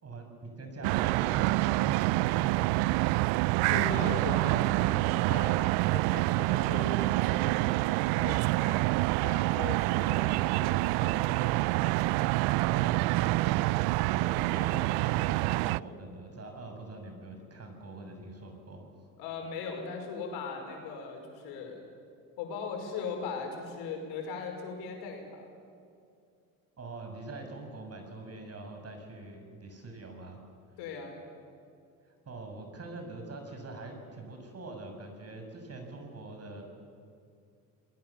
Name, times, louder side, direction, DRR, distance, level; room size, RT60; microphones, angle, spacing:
voice 1, 0.0-4.0 12.7-13.8 14.1-18.9 26.8-30.4 32.2-36.7, right 2 dB, 40° right, 4 dB, 6.7 m, -43 dB
sound 1, 0.8-15.8, right 21 dB, 75° right, 0.5 m, -27 dB
voice 2, 3.7-8.9 9.2-11.6 19.2-21.8 22.4-25.5 30.8-31.2, left 4 dB, 75° left, 2 dB, 5.5 m, -39 dB
27.5 x 20.5 x 7.2 m, 2.4 s
supercardioid pair, 70°, 39 cm